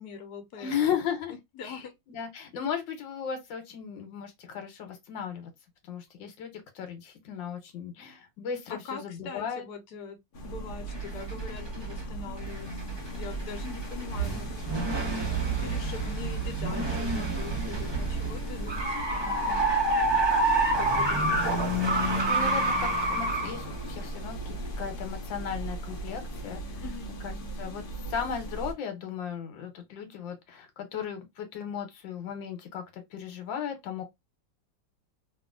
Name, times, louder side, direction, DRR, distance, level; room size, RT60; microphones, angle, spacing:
voice 1, 0.0-0.7 1.6-1.9 8.7-10.2 10.4-14.5 15.6-20.3 20.8-21.6 26.8-27.1, left 5 dB, 65° left, 1.3 m, -43 dB
voice 2, 0.6-1.3 1.6-5.5 5.9-9.6 20.8-21.2 22.3-26.8 27.2-34.0, left 7 dB, 85° left, 1.6 m, -36 dB
sound 1, 10.3-28.7, right 2 dB, 45° left, 0.7 m, -37 dB
sound 2, 10.9-12.0 12.4-25.0, right 2 dB, 35° right, 0.4 m, -29 dB
3.0 x 2.7 x 2.4 m
omnidirectional pair, 2.0 m